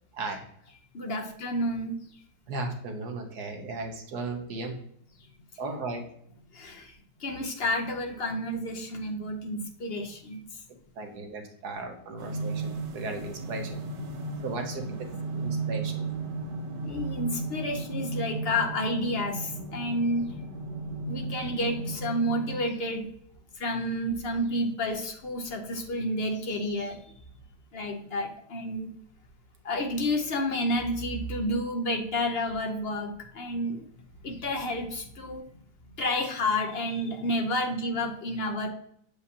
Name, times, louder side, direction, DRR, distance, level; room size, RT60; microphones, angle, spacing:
voice 1, 0.1-0.4 1.1-1.2 2.5-4.8 5.6-6.1 11.0-13.8 14.4-14.8 15.3-16.1, right 3 dB, 65° right, 4 dB, 1.5 m, -36 dB
voice 2, 0.9-2.0 6.5-6.9 7.2-10.4 14.9-15.0 16.8-20.3 21.0-23.1 23.6-27.0 27.7-28.9 29.6-33.8 34.2-35.5 36.0-38.7, left 1 dB, 60° left, 4 dB, 0.6 m, -30 dB
sound 1, 12.2-22.6, right 3 dB, 85° right, 1.5 m, -35 dB
7.1 x 4.9 x 2.7 m, 0.66 s
omnidirectional pair, 1.8 m